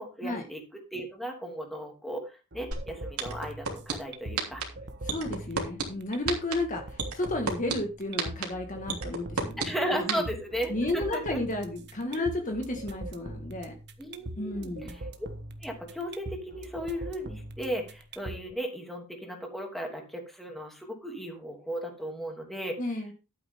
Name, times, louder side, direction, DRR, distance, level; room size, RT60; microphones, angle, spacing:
voice 1, 0.0-4.6 9.6-11.4 12.1-12.3 14.0-14.7 15.6-22.8, equal, ahead, 1 dB, 2.8 m, -35 dB
sound 1, 2.5-18.5, right 1 dB, 50° right, 1.3 m, -43 dB
sound 2, 2.7-2.8 3.2-3.9 4.4-4.6 5.1-5.8 6.3-6.5 7.0-7.7 8.2-8.4 8.9-9.7 10.1-10.2, right 6 dB, 80° right, 3.0 m, -28 dB
voice 2, 5.0-10.2 10.7-13.7 14.4-15.0 22.8-23.1, left 2 dB, 35° left, 3 dB, 1.8 m, -32 dB
12.0 x 8.6 x 3.8 m, 0.30 s
head